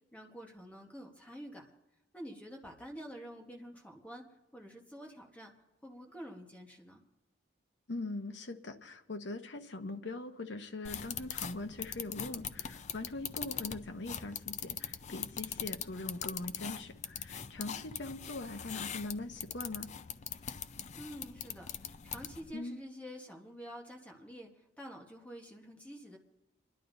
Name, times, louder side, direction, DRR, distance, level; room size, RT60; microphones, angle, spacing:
voice 1, 0.1-1.7 2.1-4.2 4.5-5.5 5.8-7.0 20.9-26.2, equal, 10° left, 1 dB, 1.2 m, -48 dB
voice 2, 7.9-19.9 22.5-22.8, left 2 dB, 65° left, 6 dB, 0.9 m, -41 dB
sound 1, 10.8-22.5, left 8 dB, 40° left, 0.4 m, -42 dB
29.5 x 11.0 x 2.7 m, 1.0 s
head